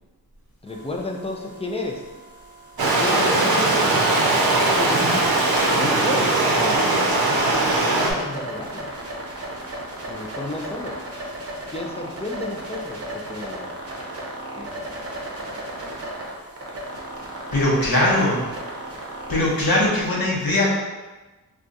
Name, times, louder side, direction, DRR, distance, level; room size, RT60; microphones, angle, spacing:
voice 1, 0.6-2.0 2.8-4.1 4.6-5.2 5.7-7.0 7.9-8.9 10.0-11.0 11.7-13.7 14.6-14.7, left 2 dB, 15° left, 0 dB, 0.4 m, -32 dB
sound 1, 0.7-19.9, right 1 dB, 40° right, 0.7 m, -35 dB
Stream, 2.8-8.1, right 2 dB, 80° right, 0.6 m, -20 dB
voice 2, 17.5-18.4 19.3-20.7, left 1 dB, 70° left, -4 dB, 0.9 m, -20 dB
2.4 x 2.4 x 3.9 m, 1.2 s
wide cardioid pair, 80°, 37 cm